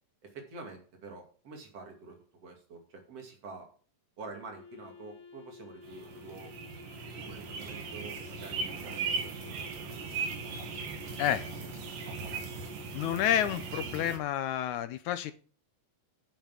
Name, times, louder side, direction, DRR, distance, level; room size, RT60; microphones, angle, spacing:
voice 1, 0.2-3.7 4.2-6.5 7.1-9.7, right 3 dB, 50° right, 3 dB, 3.4 m, -47 dB
Wind instrument woodwind instrument, 4.3-13.6, left 5 dB, 45° left, 2.8 m, -53 dB
sound 1, 5.8-14.2, right 5 dB, 85° right, 3.4 m, -38 dB
voice 2, 12.9-15.3, left 10 dB, 75° left, 12 dB, 2.0 m, -29 dB
9.3 x 7.3 x 7.5 m, 0.40 s
omnidirectional pair, 3.7 m